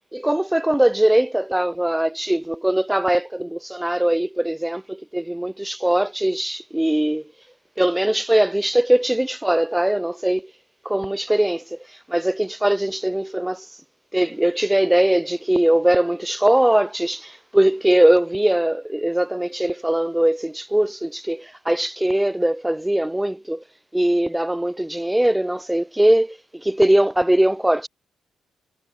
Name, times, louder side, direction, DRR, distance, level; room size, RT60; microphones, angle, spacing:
voice 1, 0.1-7.2 7.8-10.4 10.8-11.8 12.1-13.7 14.1-23.6 23.9-27.9, right 1 dB, 5° right, 0.9 m, -20 dB
cardioid pair, 90°, 0 cm